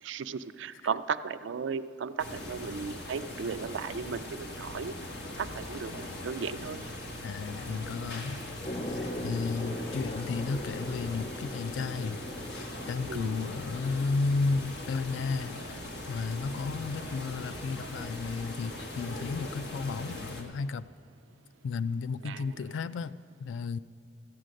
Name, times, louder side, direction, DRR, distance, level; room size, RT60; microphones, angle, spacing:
voice 1, 0.0-4.9 5.4-6.8 13.1-13.5 22.2-22.6, right 6 dB, 80° right, 13 dB, 0.4 m, -36 dB
sound 1, 2.2-20.4, left 1 dB, 60° left, 1.3 m, -40 dB
voice 2, 7.2-8.4 9.2-12.2 12.6-15.8 16.1-20.8 21.6-23.8, left 4 dB, 80° left, 15 dB, 0.3 m, -33 dB
sound 2, 8.6-14.9, left 1 dB, 30° left, 0.6 m, -40 dB
13.5 x 8.2 x 6.4 m, 2.2 s
head